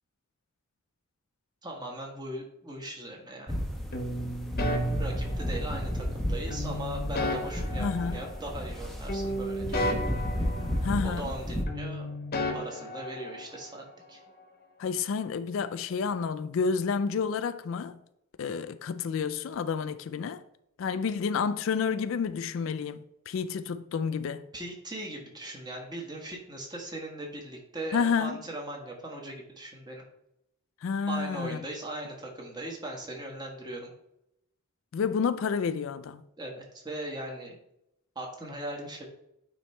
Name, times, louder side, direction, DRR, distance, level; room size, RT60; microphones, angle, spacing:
voice 1, 1.6-3.6 5.0-10.0 11.0-12.2 12.5-14.2 24.5-30.0 31.1-33.9 36.4-37.6 38.1-39.0, right 1 dB, 20° right, 1.3 m, -39 dB
sound 1, 3.5-11.6, equal, ahead, 0.8 m, -33 dB
sound 2, 3.9-5.9 6.5-8.8 9.1-11.4 11.7-13.7, equal, 45° left, 1.0 m, -34 dB
voice 2, 7.8-8.2 10.8-11.3 14.8-18.0 18.4-20.4 20.8-24.4 27.9-28.4 30.8-31.6 34.9-36.2, left 5 dB, 65° left, 0.3 m, -30 dB
9.2 x 3.1 x 4.4 m
head